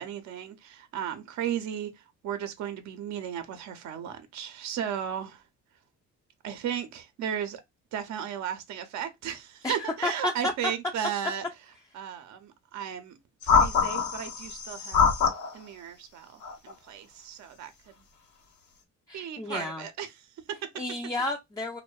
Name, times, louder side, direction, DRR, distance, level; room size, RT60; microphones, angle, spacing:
voice 1, 0.0-5.4 6.4-7.6 7.9-11.5 11.9-13.2 13.4-15.1 15.5-17.7 19.1-20.6, right 9 dB, 65° right, 0.5 m, -35 dB
voice 2, 10.0-10.3 19.1-19.8 20.8-21.8, left 2 dB, 10° left, 0.4 m, -31 dB
sound 1, 13.4-15.5 16.4-16.7, left 6 dB, 80° left, 0.9 m, -24 dB
2.6 x 2.1 x 2.2 m
cardioid pair, 90°, 30 cm